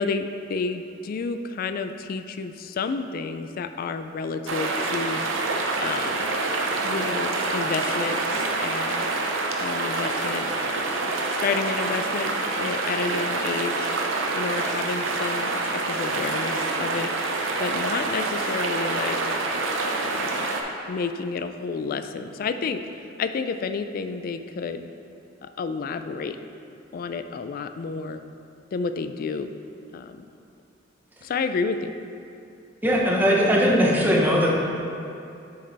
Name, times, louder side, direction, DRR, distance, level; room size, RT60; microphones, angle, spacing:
voice 1, 0.0-5.2 5.8-6.4 6.8-9.1 9.6-13.9 14.3-17.1 17.6-19.2 19.9-20.5 20.9-22.8 23.2-24.9 25.4-26.4 26.9-28.2 28.7-29.5 29.9-30.2 31.2-31.9, left 4 dB, 50° left, 9 dB, 0.3 m, -30 dB
sound 1, 4.5-20.6, right 3 dB, 85° right, 0.7 m, -26 dB
voice 2, 32.8-34.5, equal, 10° right, -3 dB, 0.8 m, -19 dB
6.8 x 5.3 x 4.0 m, 2.6 s
head